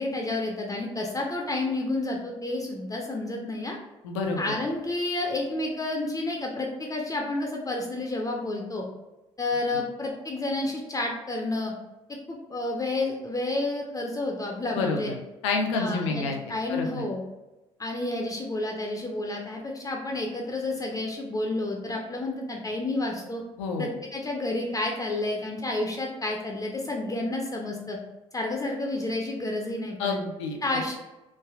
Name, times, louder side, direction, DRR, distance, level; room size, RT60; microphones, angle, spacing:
voice 1, 0.0-3.8 4.4-8.8 9.4-11.7 12.3-15.1 15.7-17.2 17.8-23.4 23.8-28.0 28.3-30.2 30.6-30.9, left 2 dB, 20° left, 0 dB, 0.5 m, -30 dB
voice 2, 4.0-4.4 14.7-15.1 15.4-16.4 16.7-17.0 23.6-23.9 30.0-30.8, left 4 dB, 75° left, 3 dB, 0.5 m, -28 dB
3.2 x 2.4 x 2.3 m, 1.0 s
figure-of-eight pair, 45°, 16 cm